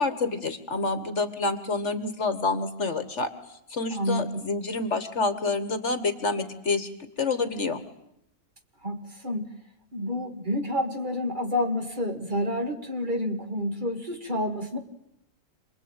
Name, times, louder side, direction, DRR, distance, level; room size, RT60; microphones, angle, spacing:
voice 1, 0.0-3.3 3.7-6.9 7.2-7.8, left 3 dB, 50° left, 11 dB, 1.7 m, -28 dB
voice 2, 3.9-4.3 8.8-9.5 9.9-14.8, left 1 dB, 30° right, 4 dB, 2.2 m, -29 dB
27.5 x 20.5 x 9.0 m, 0.82 s
omnidirectional pair, 1.6 m